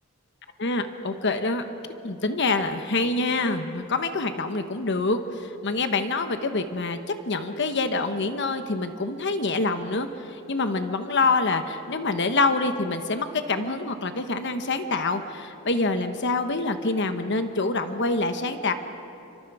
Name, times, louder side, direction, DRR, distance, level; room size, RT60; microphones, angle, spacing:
voice 1, 0.6-1.6 2.0-7.0 7.3-18.7, left 3 dB, 60° left, 8 dB, 1.2 m, -26 dB
29.0 x 25.0 x 4.9 m, 2.8 s
head